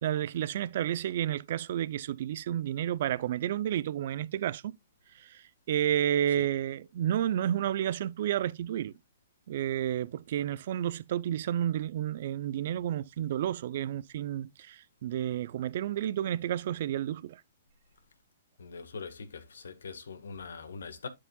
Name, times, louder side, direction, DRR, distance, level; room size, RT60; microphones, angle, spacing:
voice 1, 0.0-4.8 5.2-8.9 9.5-17.4, right 11 dB, 55° right, 0.5 m, -31 dB
voice 2, 18.6-21.1, left 4 dB, 85° left, 1.5 m, -42 dB
11.0 x 4.9 x 2.3 m
hypercardioid pair, 145°, 0 cm